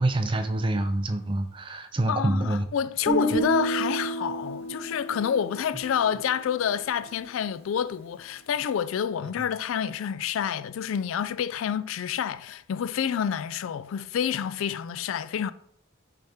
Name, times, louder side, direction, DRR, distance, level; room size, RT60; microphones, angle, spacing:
voice 1, 0.0-2.7, right 1 dB, 25° right, 0.5 m, -26 dB
voice 2, 2.1-15.5, left 8 dB, 75° left, 0.3 m, -28 dB
Guitar, 3.1-7.0, right 2 dB, 30° left, 1.3 m, -30 dB
6.5 x 3.5 x 4.3 m
head